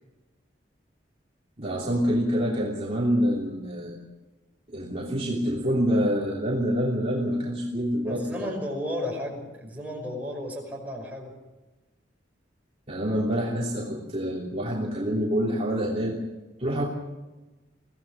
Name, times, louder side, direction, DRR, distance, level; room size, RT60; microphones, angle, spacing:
voice 1, 1.6-4.0 4.7-8.5 12.9-16.2 16.6-16.8, equal, 35° right, -3 dB, 3.1 m, -26 dB
voice 2, 8.0-11.3, left 1 dB, 10° right, -1 dB, 5.6 m, -33 dB
23.5 x 16.5 x 7.3 m, 1.1 s
head